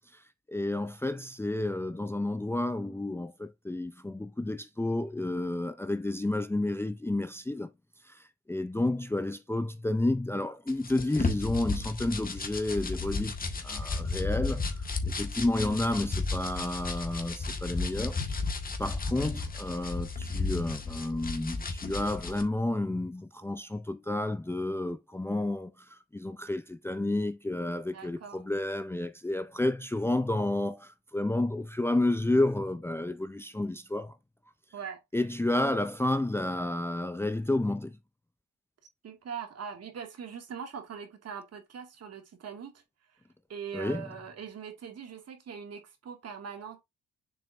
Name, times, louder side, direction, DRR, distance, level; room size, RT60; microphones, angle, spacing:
voice 1, 0.5-7.7 8.1-8.2 8.5-13.3 13.6-14.8 15.1-18.2 18.8-34.1 35.1-38.0 43.7-44.0, left 2 dB, 10° left, 0.6 m, -31 dB
sound 1, 10.7-22.4, left 3 dB, 30° left, 1.7 m, -33 dB
voice 2, 27.9-28.4 34.7-35.0 39.0-42.8 43.5-46.8, right 7 dB, 55° right, 2.3 m, -41 dB
7.1 x 5.5 x 2.6 m
cardioid pair, 90°, 30 cm